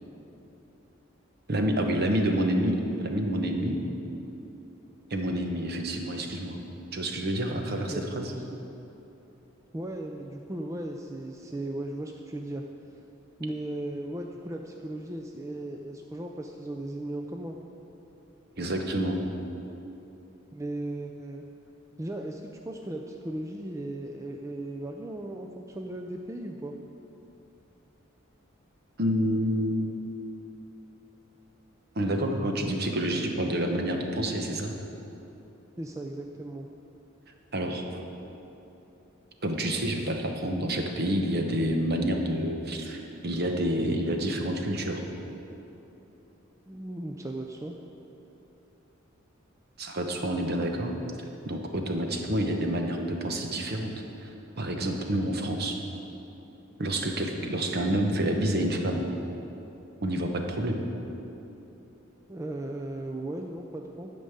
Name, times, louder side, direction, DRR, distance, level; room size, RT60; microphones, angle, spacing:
voice 1, 1.5-3.8 5.1-6.6 6.9-8.3 18.6-19.2 29.0-30.0 31.9-34.8 37.5-38.0 39.4-45.0 49.8-50.9 51.4-53.9 54.2-55.8 56.8-59.1 60.0-60.8, right 1 dB, 50° right, 3 dB, 1.0 m, -28 dB
voice 2, 7.9-8.6 9.7-12.6 13.4-17.6 20.5-21.4 22.0-26.7 35.8-36.7 46.7-47.8 62.3-64.1, right 1 dB, 15° right, 2 dB, 0.4 m, -36 dB
11.5 x 5.3 x 8.0 m, 3.0 s
head